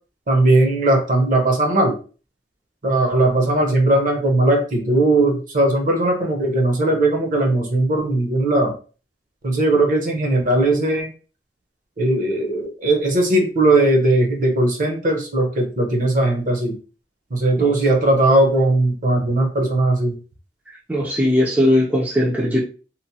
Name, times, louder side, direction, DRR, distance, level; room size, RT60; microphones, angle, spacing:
voice 1, 0.3-2.0 2.8-8.7 9.4-11.1 12.0-16.8 17.3-20.2, right 2 dB, 50° right, 0.7 m, -18 dB
voice 2, 20.9-22.6, left 1 dB, 10° right, 0.4 m, -18 dB
2.9 x 2.0 x 2.7 m
head